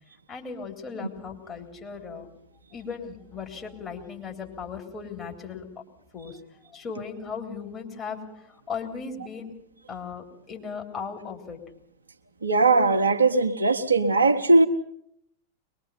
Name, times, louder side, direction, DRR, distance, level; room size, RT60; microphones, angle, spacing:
voice 1, 0.3-2.3 2.7-5.7 6.1-6.4 6.7-9.5 9.9-11.6, left 5 dB, 20° left, 0 dB, 3.7 m, -37 dB
voice 2, 12.4-14.7, right 3 dB, 75° right, 6 dB, 1.1 m, -19 dB
23.0 x 21.5 x 5.6 m, 0.72 s
figure-of-eight pair, 90°, 0 cm